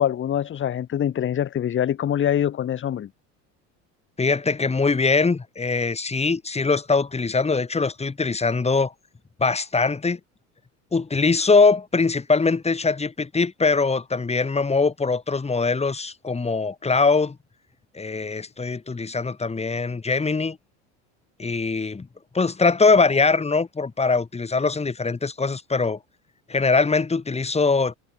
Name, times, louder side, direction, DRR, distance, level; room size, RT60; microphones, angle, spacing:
voice 1, 0.0-3.1, left 10 dB, 35° left, 1.4 m, -24 dB
voice 2, 4.2-8.9 9.4-10.2 10.9-17.4 17.9-20.6 21.4-22.1 22.3-26.0 26.5-27.9, left 4 dB, 20° left, 6.1 m, -22 dB
supercardioid pair, 105°, 35 cm